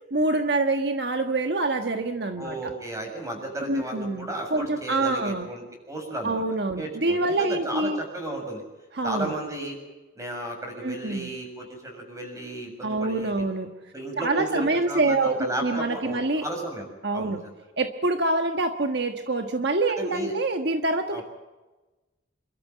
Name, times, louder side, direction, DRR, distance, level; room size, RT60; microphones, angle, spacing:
voice 1, 0.1-2.6 3.7-5.5 6.2-8.0 9.0-9.3 10.8-11.3 12.8-13.7 14.2-16.4 17.0-17.4 17.8-21.2, right 2 dB, 60° right, 6 dB, 1.4 m, -26 dB
voice 2, 2.4-6.4 6.7-8.6 9.0-9.8 10.2-13.4 13.9-17.6 20.0-20.3 21.1-21.2, right 1 dB, 15° right, 3 dB, 6.9 m, -34 dB
28.0 x 13.5 x 9.2 m, 1.1 s
head